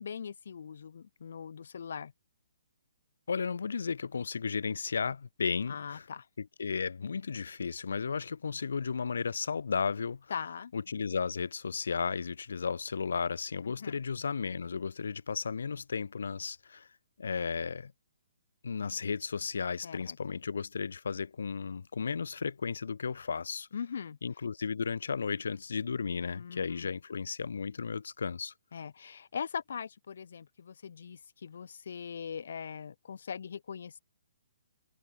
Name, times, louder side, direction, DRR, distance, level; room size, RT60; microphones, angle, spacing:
voice 1, 0.0-2.1 5.7-6.3 10.3-10.7 13.6-13.9 19.8-20.2 23.7-24.2 26.3-26.9 28.7-34.0, left 7 dB, 55° left, 2.2 m, -41 dB
voice 2, 3.3-6.1 6.4-10.3 10.7-16.9 17.2-17.9 18.6-23.7 24.2-28.5, left 5 dB, 75° left, 1.7 m, -34 dB
hypercardioid pair, 180°, 0 cm